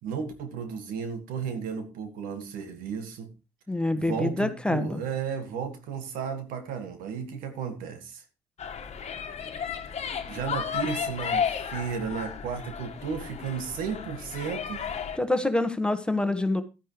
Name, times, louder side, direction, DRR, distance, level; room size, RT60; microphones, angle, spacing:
voice 1, 0.0-3.3 4.0-8.2 10.3-14.9, right 6 dB, 80° right, 8 dB, 1.8 m, -34 dB
voice 2, 3.7-5.0 15.1-16.6, left 2 dB, 5° left, 9 dB, 1.4 m, -26 dB
sound 1, 8.6-15.2, left 7 dB, 50° left, 1.4 m, -33 dB
12.0 x 10.0 x 3.2 m, 0.30 s
supercardioid pair, 65°, 14 cm